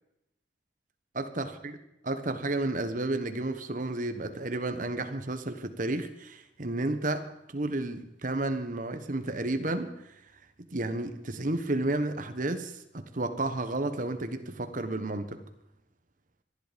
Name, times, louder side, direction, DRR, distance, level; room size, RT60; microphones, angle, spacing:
voice 1, 1.1-1.8 2.0-10.2 10.7-15.4, right 2 dB, 45° right, 1.3 m, -32 dB
24.5 x 11.0 x 5.2 m
head